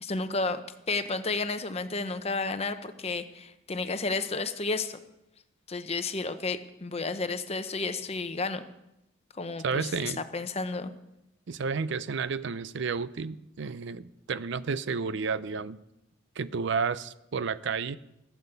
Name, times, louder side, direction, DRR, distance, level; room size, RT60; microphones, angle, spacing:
voice 1, 0.0-5.0 5.7-8.6 9.3-10.9, left 3 dB, 30° left, 10 dB, 0.8 m, -32 dB
voice 2, 9.6-10.2 11.5-15.8 16.4-18.0, right 5 dB, 60° right, 15 dB, 0.5 m, -31 dB
16.0 x 8.5 x 6.8 m, 0.89 s
head